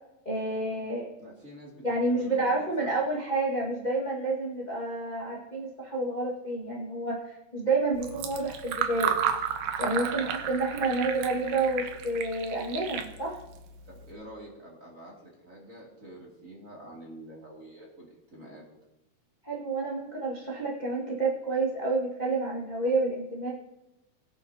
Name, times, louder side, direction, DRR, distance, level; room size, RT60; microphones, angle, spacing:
voice 1, 0.2-1.0 1.8-9.1 9.8-13.4 19.4-23.5, right 2 dB, 30° left, -4 dB, 0.8 m, -29 dB
voice 2, 1.2-3.1 13.8-18.6, right 1 dB, 25° right, -3 dB, 2.5 m, -47 dB
Fill (with liquid), 7.9-14.1, right 8 dB, 75° right, 2.3 m, -33 dB
21.0 x 9.1 x 2.9 m, 0.93 s
omnidirectional pair, 4.0 m